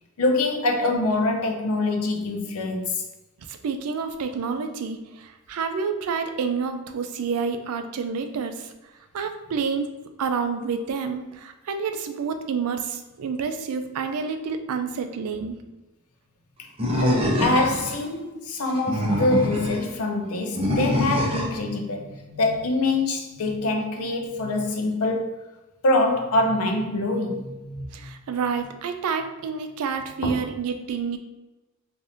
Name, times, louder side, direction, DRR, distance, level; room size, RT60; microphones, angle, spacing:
voice 1, 0.2-3.0 17.0-25.4 25.8-28.1 30.2-30.4, left 2 dB, 75° left, 0.5 m, -25 dB
voice 2, 3.5-8.7 9.1-9.9 10.2-15.6 27.9-31.2, right 5 dB, 80° right, 0.4 m, -29 dB
Animal, 16.8-18.0 18.7-19.8 20.6-21.6, left 1 dB, 25° right, 0.6 m, -24 dB
3.4 x 2.6 x 2.6 m
head